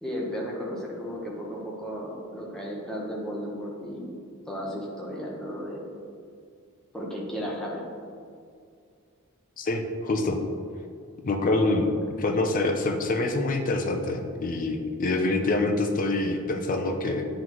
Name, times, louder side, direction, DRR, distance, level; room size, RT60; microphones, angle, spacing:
voice 1, 0.0-4.2 4.5-5.9 6.9-7.9, equal, 5° left, -4 dB, 1.0 m, -34 dB
voice 2, 9.6-10.4 11.2-11.9 12.2-17.2, left 2 dB, 35° left, 4 dB, 0.5 m, -26 dB
9.3 x 3.8 x 3.0 m, 2.3 s
head